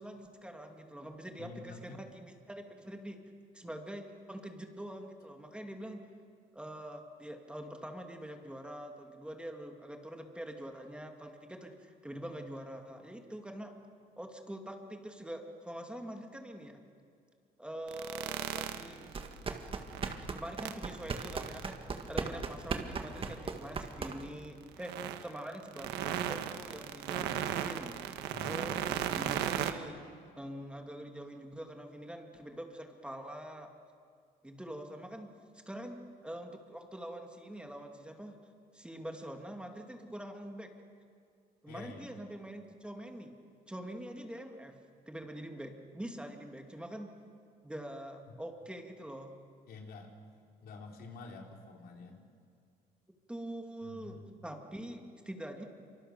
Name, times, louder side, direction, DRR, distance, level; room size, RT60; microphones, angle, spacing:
voice 1, 0.0-3.2 3.5-6.0 6.5-13.7 14.2-16.8 17.6-19.1 20.3-21.8 22.1-28.0 28.4-30.0 30.4-33.7 34.4-35.3 35.7-38.4 38.7-40.7 41.6-43.3 43.7-44.7 45.1-47.1 47.6-49.4 53.3-55.6, right 1 dB, 5° right, 3 dB, 2.4 m, -44 dB
voice 2, 1.4-2.0 23.2-23.5 28.3-28.8 41.7-42.2 49.7-50.1 50.6-52.3 53.8-54.3, left 3 dB, 65° left, 2 dB, 3.7 m, -48 dB
sound 1, 17.9-20.2 20.6-24.1 24.8-29.7, right 11 dB, 90° right, 1.4 m, -36 dB
sound 2, 19.1-24.5, right 5 dB, 30° right, 1.8 m, -38 dB
26.5 x 24.5 x 6.8 m, 2.3 s
cardioid pair, 110°, 17 cm